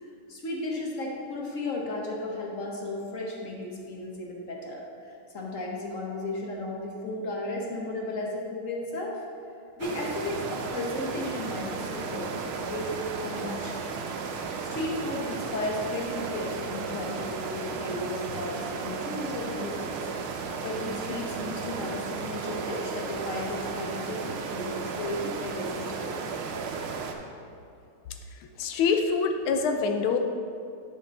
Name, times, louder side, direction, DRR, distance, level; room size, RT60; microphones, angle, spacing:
voice 1, 0.3-9.2 9.8-13.8 14.7-20.1 20.6-26.2, left 1 dB, 50° left, -2 dB, 1.1 m, -34 dB
sound 1, 9.8-27.1, right 5 dB, 75° right, 1.5 m, -34 dB
voice 2, 28.3-30.2, left 5 dB, 80° left, 6 dB, 1.4 m, -26 dB
9.6 x 5.2 x 4.1 m, 2.5 s
omnidirectional pair, 2.4 m